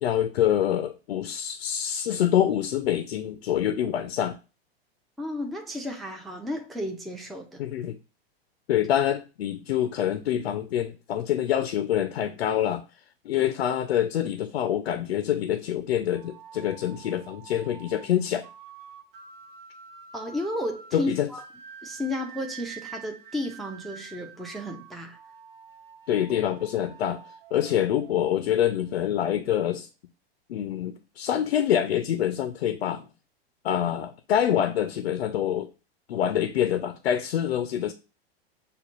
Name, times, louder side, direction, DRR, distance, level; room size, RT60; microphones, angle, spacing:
voice 1, 0.0-4.4 7.6-8.0 8.7-12.8 13.3-18.5 20.9-21.3 26.1-27.2 27.5-29.9 30.5-33.1 33.6-35.7 36.1-37.9, left 10 dB, 90° left, 0.5 m, -26 dB
voice 2, 5.2-7.6 20.1-21.4 21.8-25.2, left 1 dB, ahead, 0.4 m, -33 dB
sound 1, 16.1-28.9, right 7 dB, 60° right, 0.8 m, -48 dB
6.7 x 2.3 x 2.4 m
hypercardioid pair, 110°, 30 cm